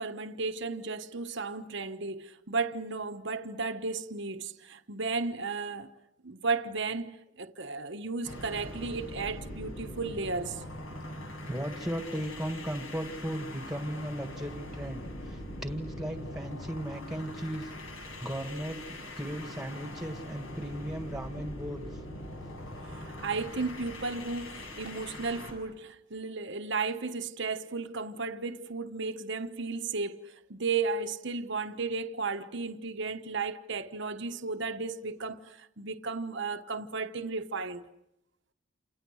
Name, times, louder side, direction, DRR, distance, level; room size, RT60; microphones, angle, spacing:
voice 1, 0.0-5.9 6.2-10.6 22.9-37.8, right 4 dB, 55° right, 1.2 m, -34 dB
sound 1, 8.2-25.6, left 1 dB, 65° left, 7.8 m, -42 dB
voice 2, 11.5-21.9, equal, ahead, 2.1 m, -37 dB
29.5 x 28.5 x 6.4 m
head